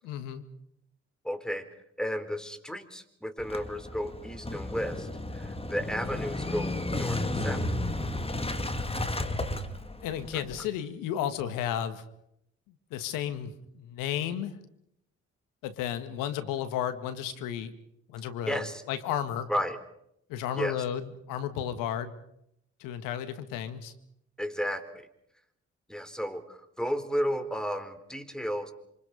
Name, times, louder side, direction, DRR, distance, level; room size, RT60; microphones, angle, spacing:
voice 1, 0.0-0.5 10.0-12.0 12.9-14.6 15.6-17.7 18.1-19.5 20.3-22.1 22.8-23.9, left 10 dB, 80° left, 9 dB, 2.0 m, -33 dB
voice 2, 1.2-1.7 2.0-5.1 5.3-7.7 10.3-10.4 18.5-18.8 19.5-19.8 20.6-20.8 24.4-25.1 25.9-28.7, equal, ahead, 9 dB, 4.1 m, -33 dB
Motorcycle / Engine starting, 3.4-10.6, left 2 dB, 20° left, 2.3 m, -33 dB
28.0 x 24.5 x 5.3 m, 0.77 s
hypercardioid pair, 50°, 32 cm